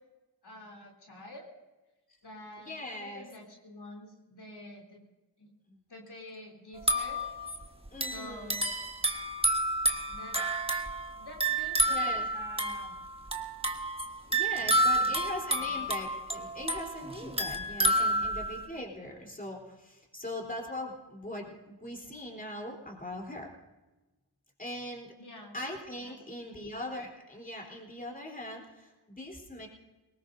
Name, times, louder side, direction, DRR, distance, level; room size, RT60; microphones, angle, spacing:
voice 1, 0.4-1.5 2.2-5.0 5.4-5.5 5.9-7.2 8.1-8.7 10.1-10.4 11.2-13.0 14.6-15.2 15.6-15.8 17.9-18.2 25.1-25.6 26.1-26.7, left 1 dB, 70° left, -2 dB, 3.3 m, -48 dB
voice 2, 2.6-3.3 5.7-5.8 7.9-8.6 11.9-12.3 14.2-23.5 24.6-25.1 25.5-29.7, left 1 dB, 20° left, 0 dB, 3.7 m, -41 dB
sound 1, 6.8-18.7, right 1 dB, 15° right, 1.5 m, -30 dB
22.5 x 19.5 x 2.7 m, 1.1 s
wide cardioid pair, 50°, 41 cm